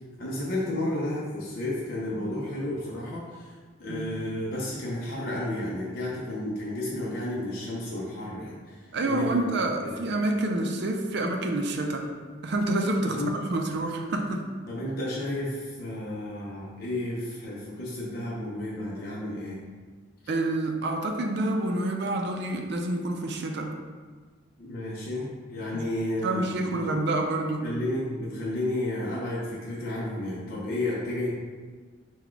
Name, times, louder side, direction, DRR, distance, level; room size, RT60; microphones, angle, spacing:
voice 1, 0.2-9.4 9.8-10.0 13.0-13.3 14.7-19.6 24.6-27.1 27.6-31.3, left 1 dB, 50° left, -6 dB, 0.6 m, -32 dB
voice 2, 8.9-12.1 12.4-14.5 20.3-23.7 26.2-27.6, right 2 dB, 55° right, 3 dB, 0.4 m, -28 dB
4.0 x 2.2 x 4.5 m, 1.5 s
head